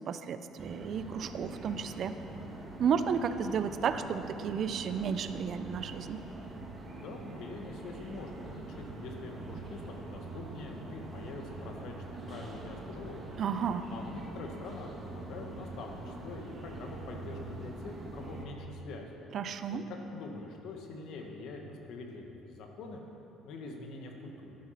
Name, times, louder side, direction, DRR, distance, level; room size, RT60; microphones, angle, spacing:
voice 1, 0.1-2.2 2.8-6.2 13.4-13.9 19.3-19.8, right 7 dB, 55° right, 10 dB, 0.7 m, -32 dB
sound 1, 0.6-18.5, right 2 dB, 35° right, 2.3 m, -44 dB
voice 2, 6.8-13.2 13.9-19.2 19.7-23.0 23.4-24.6, left 3 dB, 70° left, 2 dB, 1.8 m, -44 dB
11.5 x 11.0 x 5.9 m, 2.9 s
supercardioid pair, 75°, 0 cm